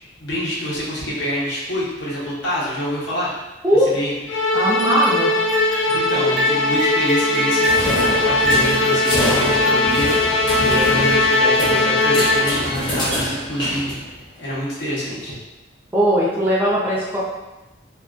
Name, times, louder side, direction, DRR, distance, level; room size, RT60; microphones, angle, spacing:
voice 1, 0.2-3.3 3.9-4.1 5.9-13.9 14.4-15.3, equal, 70° left, -7 dB, 0.8 m, -26 dB
Musical instrument, 4.3-12.8, left 2 dB, 85° left, 0.4 m, -19 dB
voice 2, 4.5-5.3 15.9-17.2, right 1 dB, 10° right, -8 dB, 0.4 m, -18 dB
sound 1, 4.8-5.2 5.5-6.1 6.4-8.0 8.4-10.5 10.9-11.8 12.0-13.5, left 1 dB, 70° right, 0.7 m, -27 dB
sound 2, 7.6-14.4, equal, 25° left, 0.7 m, -26 dB
2.3 x 2.2 x 2.4 m, 1.0 s
head